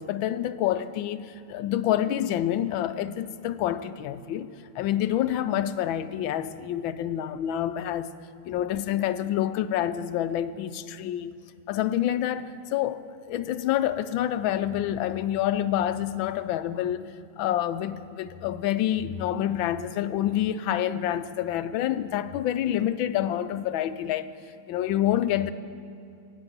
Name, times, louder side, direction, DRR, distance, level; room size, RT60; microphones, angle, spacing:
voice 1, 0.0-8.1 8.4-11.3 11.7-17.1 17.4-24.3 24.7-25.5, left 11 dB, 90° left, 12 dB, 1.4 m, -27 dB
17.5 x 9.1 x 7.9 m, 2.6 s
omnidirectional pair, 2.1 m